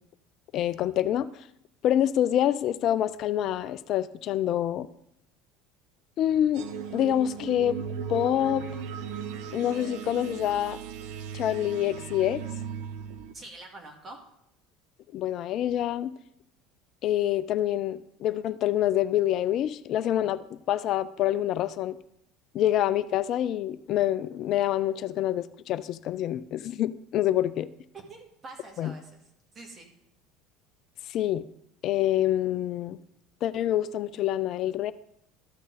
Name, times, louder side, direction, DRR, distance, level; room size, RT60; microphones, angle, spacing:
voice 1, 0.5-1.3 1.8-4.9 6.2-6.6 6.9-7.8 8.1-8.6 9.5-10.8 11.3-12.4 15.1-16.1 17.0-22.0 22.5-27.7 28.8-28.9 31.1-31.5 31.8-33.0 33.4-34.9, left 12 dB, 50° left, 15 dB, 0.4 m, -26 dB
sound 1, 6.5-13.3, right 7 dB, 65° right, 0.8 m, -37 dB
voice 2, 13.3-14.2 17.5-17.6 27.9-29.2 29.5-29.9, right 2 dB, 35° right, 1 dB, 2.0 m, -45 dB
13.0 x 6.1 x 4.0 m, 0.76 s
hypercardioid pair, 70°, 0 cm